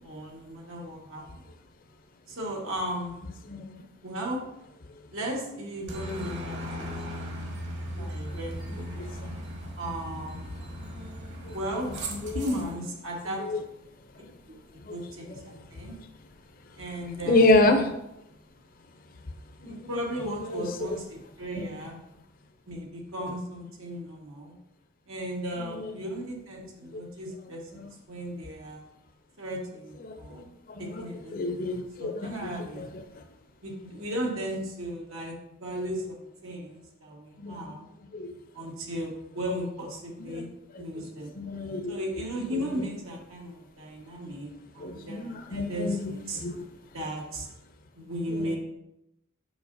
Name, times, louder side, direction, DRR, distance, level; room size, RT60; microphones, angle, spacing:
voice 1, 0.0-1.5 2.3-3.2 4.0-4.4 5.1-7.5 8.0-8.9 9.7-10.6 11.5-11.9 12.3-13.4 14.5-15.9 16.7-17.5 19.6-22.0 22.7-24.5 25.1-28.8 29.4-30.5 30.8-32.9 33.6-37.9 38.5-40.5 40.8-41.3 41.9-46.4 46.9-47.5 47.9-48.6, equal, 90° right, -1 dB, 1.5 m, -36 dB
voice 2, 3.4-3.8 8.0-9.6 11.4-11.5 11.8-12.6 13.4-13.6 14.1-14.3 14.8-15.0 15.3-15.6 17.3-18.0 19.6-19.9 20.2-21.0 21.5-21.6 25.6-26.1 26.9-27.0 27.7-27.9 30.0-31.1 31.3-33.2 37.4-37.7 38.1-38.3 40.3-40.4 40.7-40.8 41.3-42.0 42.5-42.9 44.8-46.6 48.3-48.6, left 2 dB, 45° left, 5 dB, 0.5 m, -29 dB
Aircraft, 5.9-12.7, equal, 60° right, 1.6 m, -37 dB
6.9 x 5.4 x 2.6 m, 0.85 s
head